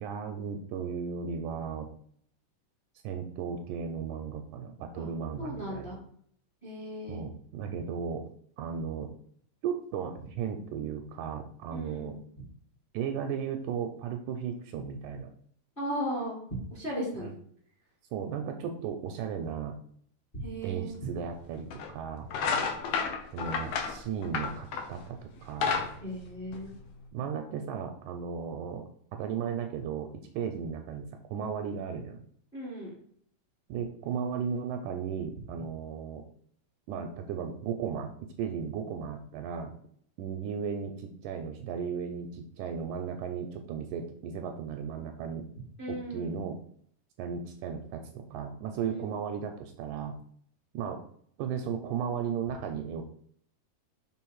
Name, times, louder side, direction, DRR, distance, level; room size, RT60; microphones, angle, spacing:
voice 1, 0.0-1.9 3.0-6.0 7.1-8.3 8.6-9.1 9.6-12.2 12.9-15.3 17.2-17.3 18.1-19.8 20.6-22.3 23.3-25.8 27.1-28.8 29.1-32.2 33.7-36.2 36.9-39.7 40.2-45.5 45.9-46.6 47.2-50.2 50.7-51.0 51.4-53.0, right 7 dB, 80° right, 5 dB, 1.9 m, -35 dB
voice 2, 5.4-6.0 6.6-7.2 11.7-12.2 15.8-16.4 16.7-17.3 20.3-21.0 26.0-26.7 32.5-32.9 45.8-46.4 48.8-49.1, equal, 25° left, -4 dB, 1.3 m, -36 dB
sound 1, 20.9-21.0 21.7-21.9 22.3-25.0 25.4-27.0, left 5 dB, 80° left, 1.4 m, -31 dB
6.2 x 3.6 x 4.6 m, 0.63 s
omnidirectional pair, 3.9 m